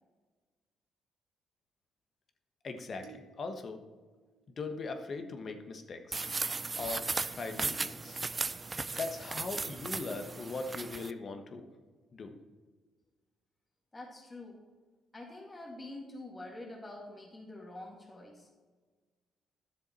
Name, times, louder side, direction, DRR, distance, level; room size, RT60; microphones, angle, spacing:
voice 1, 2.6-3.8 4.6-6.3 6.8-8.2 8.9-11.7 12.1-12.4, left 3 dB, 50° left, 6 dB, 1.2 m, -40 dB
sound 1, 3.0-5.4, right 9 dB, 75° right, 1.1 m, -60 dB
sound 2, 6.1-11.1, right 3 dB, 30° right, 0.4 m, -36 dB
voice 2, 13.9-14.6 15.1-18.5, left 2 dB, 25° left, -1 dB, 2.0 m, -46 dB
11.0 x 7.1 x 4.2 m, 1.4 s
supercardioid pair, 60°, 0 cm